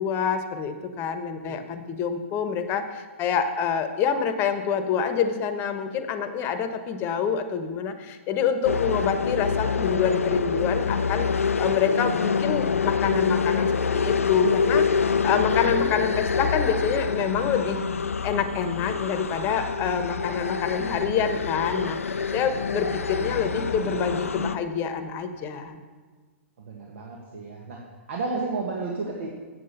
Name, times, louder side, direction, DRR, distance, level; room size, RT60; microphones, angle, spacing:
voice 1, 0.0-11.3 11.6-17.8 18.2-25.8, left 7 dB, 30° left, 9 dB, 1.0 m, -27 dB
sound 1, 8.6-24.5, left 5 dB, 85° left, 0.4 m, -26 dB
voice 2, 22.9-23.5 26.6-27.8 28.1-29.3, right 3 dB, 65° right, -1 dB, 1.6 m, -32 dB
8.1 x 7.6 x 6.8 m, 1.4 s
hypercardioid pair, 115°, 7 cm